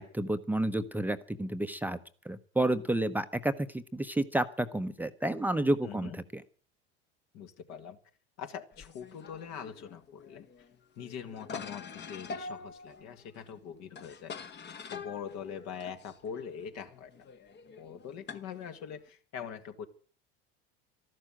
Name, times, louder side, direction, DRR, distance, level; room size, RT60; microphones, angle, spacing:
voice 1, 0.0-2.0 2.2-6.4, right 1 dB, 5° right, 8 dB, 0.9 m, -30 dB
voice 2, 5.8-6.2 7.3-8.0 8.4-10.5 11.0-14.3 14.9-17.3 17.8-19.9, left 7 dB, 55° left, 7 dB, 2.1 m, -43 dB
sound 1, 8.7-19.1, left 5 dB, 35° left, 1.3 m, -46 dB
13.5 x 12.0 x 7.6 m, 0.42 s
hypercardioid pair, 85°, 32 cm